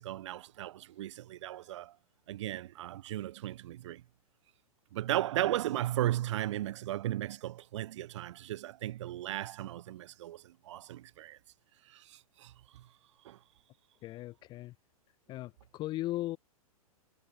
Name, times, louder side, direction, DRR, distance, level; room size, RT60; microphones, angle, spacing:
voice 1, 0.0-2.0 2.3-4.0 4.9-11.4 11.9-12.9 13.2-13.4, right 13 dB, 50° right, 2.0 m, -36 dB
voice 2, 14.0-14.7 15.3-16.4, left 16 dB, 25° left, 0.7 m, -37 dB
figure-of-eight pair, 105°, 19 cm